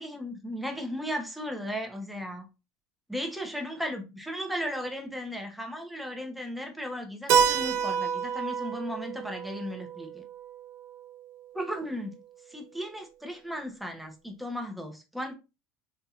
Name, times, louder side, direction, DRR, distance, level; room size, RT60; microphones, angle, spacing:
voice 1, 0.0-2.5 3.1-10.2 11.5-12.2 12.5-15.3, equal, ahead, 0.7 m, -36 dB
Keyboard (musical), 7.3-11.8, right 7 dB, 50° right, 0.6 m, -29 dB
4.2 x 2.6 x 2.4 m
cardioid pair, 160°, 6 cm